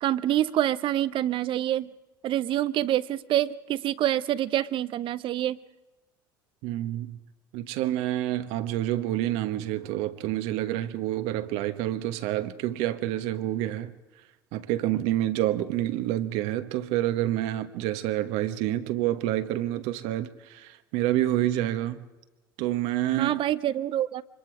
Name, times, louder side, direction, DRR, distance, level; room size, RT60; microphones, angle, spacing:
voice 1, 0.0-1.9 2.2-5.6 23.2-24.2, right 12 dB, 50° right, 16 dB, 0.8 m, -26 dB
voice 2, 6.6-7.2 7.5-13.9 14.5-22.0 22.6-23.4, right 14 dB, 65° right, 10 dB, 1.2 m, -28 dB
25.0 x 22.0 x 5.0 m, 1.1 s
hypercardioid pair, 70°, 11 cm